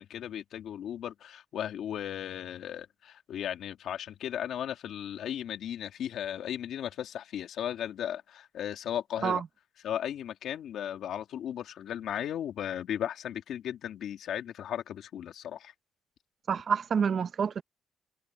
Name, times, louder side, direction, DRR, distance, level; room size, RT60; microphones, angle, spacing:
voice 1, 0.0-9.4 9.8-15.7, left 10 dB, 75° left, 2.6 m, -36 dB
voice 2, 16.5-17.6, right 6 dB, 50° right, 0.7 m, -28 dB
cardioid pair, 90°, 0 cm